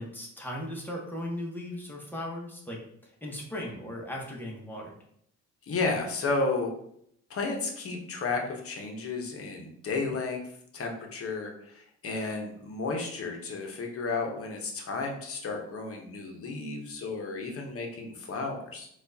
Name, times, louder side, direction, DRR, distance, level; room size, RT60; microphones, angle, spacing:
voice 1, 0.0-4.9, left 1 dB, 5° left, -2 dB, 1.1 m, -37 dB
voice 2, 5.7-6.7 7.3-10.4 10.7-18.9, left 3 dB, 50° left, 2 dB, 0.9 m, -32 dB
4.3 x 2.5 x 2.7 m, 0.69 s
cardioid pair, 90°, 30 cm